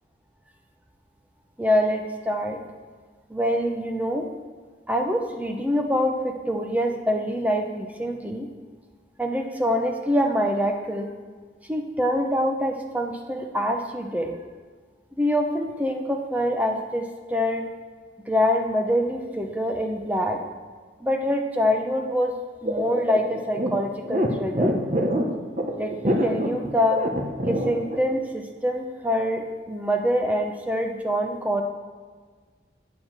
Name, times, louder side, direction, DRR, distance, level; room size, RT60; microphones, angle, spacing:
voice 1, 1.6-2.6 3.3-4.3 4.9-8.5 9.2-11.1 11.7-14.3 15.2-17.7 18.3-20.4 21.0-22.3 22.6-24.7 25.8-27.0 27.5-31.6, equal, 10° right, 3 dB, 0.8 m, -25 dB
sound 1, 22.7-28.0, equal, 40° right, 1.1 m, -25 dB
8.3 x 6.8 x 7.3 m, 1.5 s
head